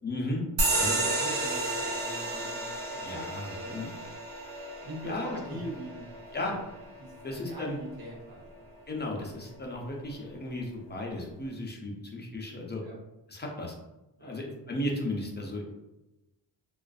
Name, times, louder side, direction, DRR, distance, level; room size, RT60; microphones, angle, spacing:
voice 1, 0.0-0.4 0.8-1.0 3.0-3.9 5.0-5.6 6.3-6.5 7.2-7.8 8.9-12.8 13.3-13.7 14.2-15.6, left 1 dB, 25° left, -1 dB, 0.5 m, -35 dB
sound 1, 0.6-7.6, right 2 dB, 80° right, 0.8 m, -32 dB
voice 2, 0.8-3.8 4.8-6.0 6.3-6.6 7.0-8.5 9.5-9.6 11.9-12.0 12.8-12.9 14.2-14.4, right 1 dB, 60° right, -3 dB, 1.0 m, -42 dB
2.4 x 2.4 x 2.3 m, 0.97 s
wide cardioid pair, 110°, 43 cm